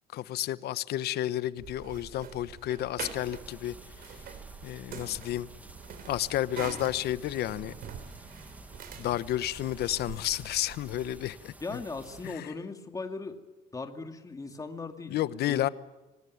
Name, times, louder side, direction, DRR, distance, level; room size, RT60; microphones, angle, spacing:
voice 1, 0.1-3.7 4.6-5.5 6.1-7.7 9.0-11.5 12.2-12.5 15.1-15.7, left 13 dB, 70° left, 1.1 m, -31 dB
sound 1, 1.6-11.3, right 7 dB, 60° right, 3.5 m, -45 dB
sound 2, 3.0-12.4, right 1 dB, 10° right, 1.9 m, -51 dB
voice 2, 11.6-13.4 13.7-15.2 15.5-15.7, left 3 dB, 20° left, 2.3 m, -38 dB
27.0 x 18.5 x 9.5 m
cardioid pair, 110°, 17 cm